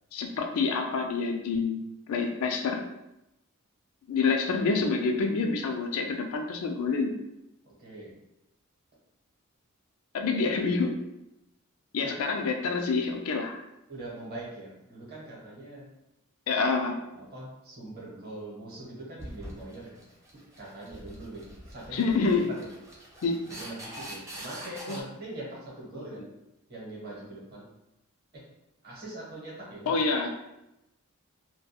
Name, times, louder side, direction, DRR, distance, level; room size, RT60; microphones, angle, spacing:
voice 1, 0.1-2.8 4.1-7.1 10.1-11.0 11.9-13.6 16.5-17.0 21.9-22.5 23.2-23.4 24.9-25.0 29.9-30.3, left 4 dB, 80° left, 4 dB, 0.4 m, -27 dB
voice 2, 7.6-8.1 12.0-12.1 13.9-15.9 16.5-16.6 17.1-20.0 20.3-22.1 22.4-22.7 23.5-26.3 26.7-27.7 28.3-28.4 28.8-29.9, right 1 dB, 45° right, -4 dB, 0.9 m, -42 dB
sound 1, 19.2-25.0, right 1 dB, 15° right, 0.5 m, -44 dB
2.3 x 2.2 x 2.7 m, 0.90 s
head